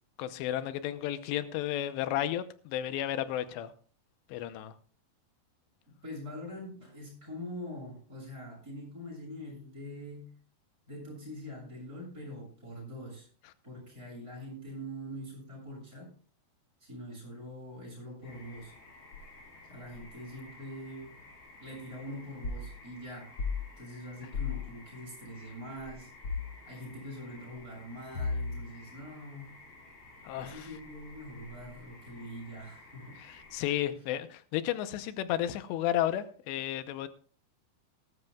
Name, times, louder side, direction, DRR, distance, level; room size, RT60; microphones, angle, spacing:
voice 1, 0.2-3.7 4.3-4.7 30.2-30.7 33.2-37.1, left 12 dB, 90° left, 3.0 m, -33 dB
voice 2, 5.9-10.3 10.9-13.3 13.6-16.1 16.8-18.7 19.6-21.1 21.6-23.4 23.8-26.1 26.6-29.5 30.3-33.2 33.9-34.0, equal, 20° right, 7.6 m, -44 dB
sound 1, 18.2-33.8, left 2 dB, 60° left, 8.9 m, -53 dB
sound 2, 22.4-22.7 23.4-23.6 24.3-24.6 26.2-26.5 28.1-28.7, left 4 dB, 40° left, 2.4 m, -33 dB
19.0 x 13.0 x 2.3 m
omnidirectional pair, 4.8 m